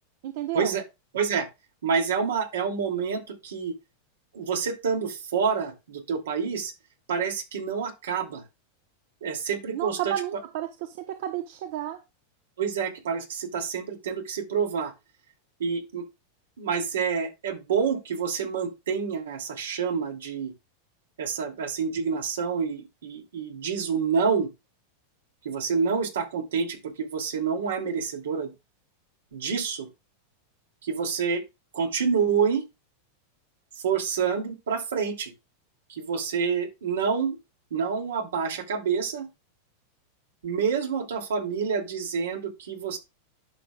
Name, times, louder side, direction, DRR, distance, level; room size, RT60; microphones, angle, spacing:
voice 1, 0.2-0.8 9.7-12.0, right 12 dB, 65° right, 7 dB, 1.0 m, -32 dB
voice 2, 1.1-1.5 1.8-3.7 4.3-6.7 7.1-8.4 9.2-10.1 12.6-14.9 15.6-16.0 16.6-20.5 21.2-24.5 25.4-28.5 29.3-29.9 30.8-31.4 31.7-32.6 33.8-35.3 35.9-37.4 37.7-39.3 40.4-43.0, right 6 dB, 90° right, 3 dB, 2.7 m, -28 dB
11.0 x 6.0 x 2.4 m, 0.25 s
hypercardioid pair, 125°, 0 cm